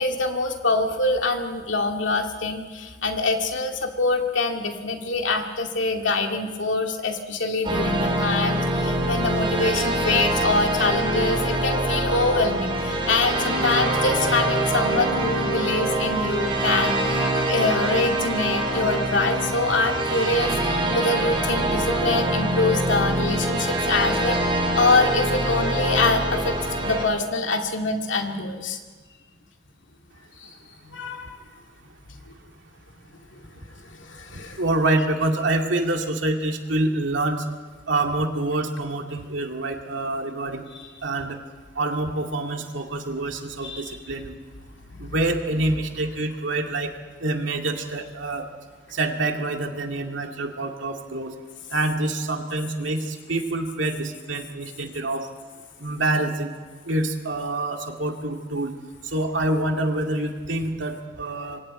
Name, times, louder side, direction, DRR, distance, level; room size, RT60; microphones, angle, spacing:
voice 1, 0.0-20.6 20.9-24.4 24.8-26.6 26.8-28.8 30.4-30.5 30.8-31.3 33.8-34.6 40.7-40.8 43.6-44.0 44.9-45.0, left 3 dB, 85° left, 3 dB, 2.3 m, -25 dB
sound 1, 7.6-27.0, right 1 dB, 25° right, 3.5 m, -24 dB
voice 2, 34.3-37.4 37.9-40.6 41.0-41.4 41.8-44.3 45.0-46.9 47.2-48.5 48.9-51.3 51.7-55.3 55.8-56.5 56.9-58.7 59.0-61.6, right 2 dB, 85° right, 3 dB, 2.3 m, -26 dB
27.0 x 24.5 x 4.4 m, 1.4 s
head